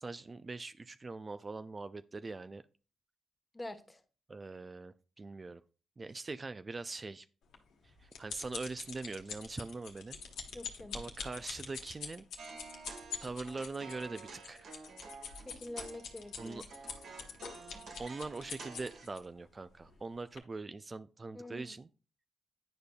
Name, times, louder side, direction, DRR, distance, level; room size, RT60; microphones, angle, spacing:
voice 1, 0.0-2.6 4.3-5.6 6.0-7.3 7.8-10.2 10.9-12.3 13.2-14.7 16.4-16.6 18.0-21.9, right 3 dB, 35° right, 0.3 m, -42 dB
voice 2, 3.5-4.0 10.5-11.0 15.4-16.6 21.3-21.7, left 1 dB, 20° left, 1.1 m, -46 dB
sound 1, 7.5-19.2 19.8-20.0 20.4-20.5, left 6 dB, 75° left, 1.1 m, -45 dB
sound 2, 12.4-19.1, right 4 dB, 65° right, 1.4 m, -51 dB
9.8 x 5.0 x 2.3 m
supercardioid pair, 55°, 0 cm